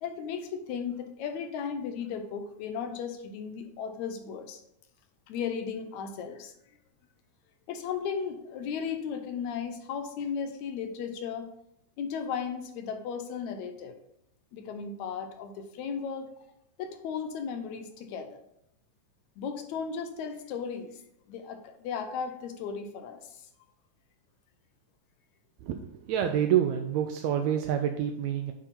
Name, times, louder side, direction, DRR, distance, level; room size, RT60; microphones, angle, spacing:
voice 1, 0.0-4.6 5.3-6.5 7.7-11.5 12.0-14.0 14.5-16.3 16.8-18.4 19.4-21.0 21.3-23.5, left 6 dB, 75° left, 7 dB, 1.9 m, -35 dB
voice 2, 26.1-28.5, right 9 dB, 85° right, 5 dB, 1.6 m, -27 dB
9.8 x 3.8 x 4.1 m, 0.78 s
omnidirectional pair, 3.7 m